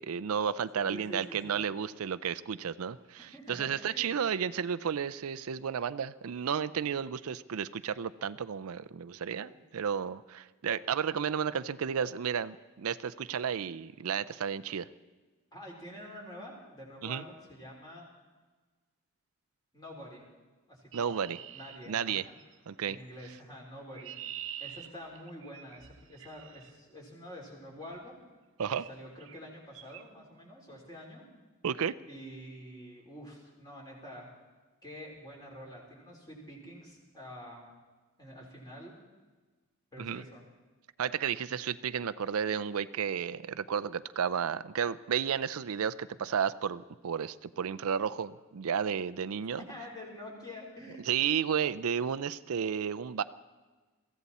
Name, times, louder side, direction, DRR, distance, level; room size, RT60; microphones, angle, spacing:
voice 1, 0.0-14.9 17.0-17.2 20.9-21.4 21.9-22.2 22.7-23.0 28.6-28.9 31.6-31.9 40.0-40.2 41.0-49.6 51.1-53.2, right 7 dB, 80° right, 13 dB, 0.5 m, -32 dB
voice 2, 0.8-1.7 3.2-4.2 15.5-18.1 19.7-20.2 20.7-22.3 22.8-24.1 24.6-28.2 28.9-31.2 32.1-34.3 34.8-37.7 38.2-38.9 39.9-40.4 49.7-51.1, equal, 20° left, -2 dB, 3.8 m, -47 dB
Chirp tweet, 20.9-22.5 23.6-26.7 27.8-28.1 28.7-28.9 29.2-29.4 29.7-30.0, right 10 dB, 60° right, 0.8 m, -46 dB
23.0 x 15.0 x 4.2 m, 1.3 s
head